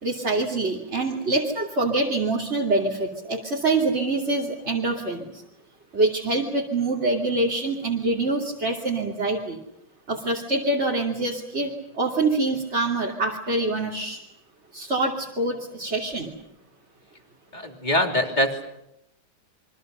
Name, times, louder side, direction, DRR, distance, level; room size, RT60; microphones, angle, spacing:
voice 1, 0.0-5.3 5.9-9.6 10.1-14.2 14.7-16.3, right 2 dB, 30° right, -2 dB, 2.9 m, -25 dB
voice 2, 17.5-18.7, left 1 dB, 20° left, 3 dB, 3.2 m, -23 dB
28.0 x 24.0 x 6.8 m, 0.84 s
omnidirectional pair, 2.4 m